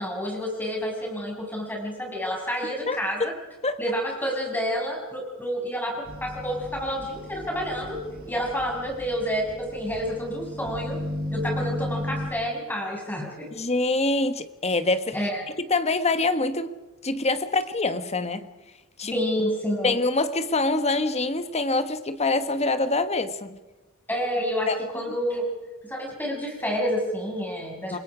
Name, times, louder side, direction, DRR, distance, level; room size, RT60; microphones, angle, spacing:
voice 1, 0.0-3.2 3.8-8.0 8.3-11.0 11.3-13.5 15.1-15.4 19.1-20.0 24.1-25.5 25.8-28.0, equal, 10° left, 6.7 m, -29 dB
voice 2, 2.9-3.3 3.6-3.8 13.5-15.2 15.6-16.7 17.0-18.5 19.0-19.1 19.8-23.6 24.7-24.8 27.9-28.0, left 2 dB, 30° left, 1.3 m, -25 dB
sound 1, 6.1-12.3, left 1 dB, 45° right, 5.8 m, -35 dB
29.5 x 21.5 x 5.0 m
head